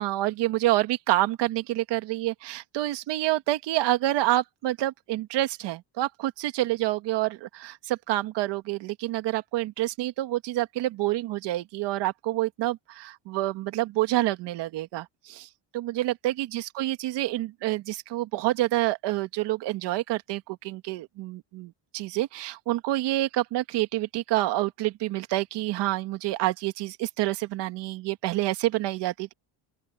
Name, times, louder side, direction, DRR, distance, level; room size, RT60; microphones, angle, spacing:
voice 1, 0.0-29.3, right 16 dB, 70° right, 2.0 m, -28 dB
open air
cardioid pair, 170°, 43 cm